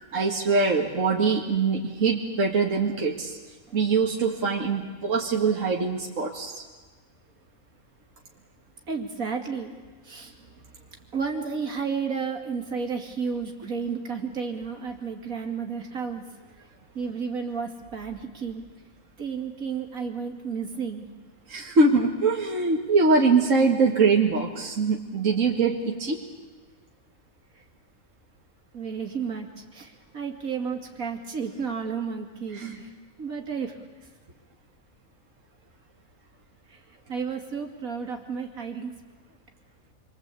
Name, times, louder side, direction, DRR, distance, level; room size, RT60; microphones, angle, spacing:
voice 1, 0.1-3.4 3.7-6.6 21.5-26.2 32.5-32.8, right 4 dB, 65° right, 0 dB, 2.3 m, -23 dB
voice 2, 8.9-9.8 10.0-10.3 11.1-16.3 16.9-18.7 19.2-21.1 27.5-27.6 28.7-32.9 33.2-34.1 36.7-36.8 37.1-38.9, right 5 dB, 85° right, 3 dB, 3.0 m, -32 dB
28.0 x 24.0 x 8.4 m, 1.3 s
omnidirectional pair, 1.4 m